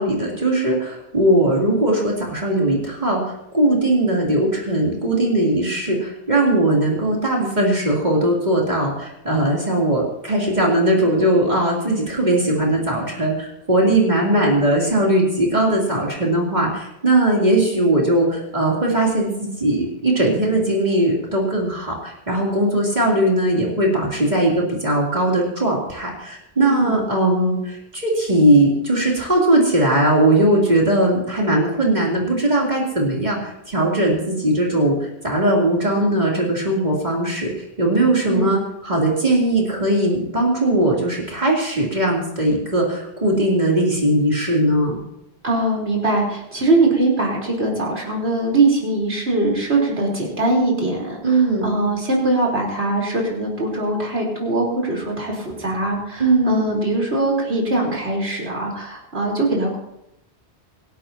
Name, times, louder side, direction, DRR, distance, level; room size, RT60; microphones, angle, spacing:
voice 1, 0.0-3.2 3.5-45.0 51.2-51.7 56.2-56.9, right 1 dB, 40° right, -3 dB, 3.5 m, -19 dB
voice 2, 45.4-59.8, right 2 dB, 70° right, -2 dB, 4.4 m, -21 dB
26.5 x 12.0 x 2.9 m, 0.80 s
omnidirectional pair, 1.1 m